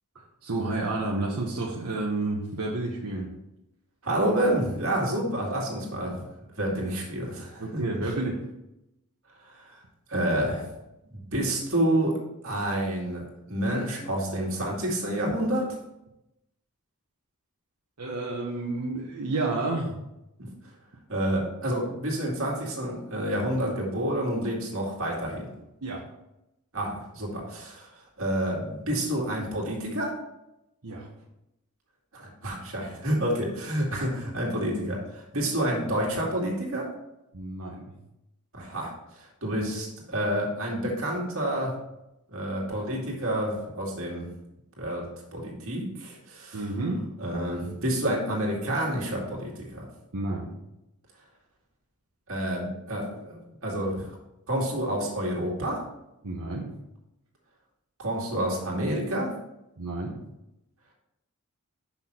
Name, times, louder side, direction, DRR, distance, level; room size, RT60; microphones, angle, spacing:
voice 1, 0.1-3.4 7.6-8.4 18.0-20.0 25.8-26.1 30.8-31.1 37.3-37.9 46.5-47.1 50.1-50.6 56.2-56.7 59.8-60.2, right 2 dB, 80° right, -3 dB, 1.1 m, -30 dB
voice 2, 4.0-6.2 6.6-7.8 9.5-9.8 10.1-10.6 11.1-12.2 12.4-15.7 20.4-20.5 21.1-25.5 26.7-27.9 28.2-30.1 32.1-36.9 38.5-41.7 42.3-44.3 44.8-46.6 47.2-49.8 52.3-54.1 54.5-55.8 58.0-59.3, right 1 dB, 65° right, -2 dB, 2.2 m, -29 dB
6.1 x 5.7 x 4.4 m, 0.88 s
head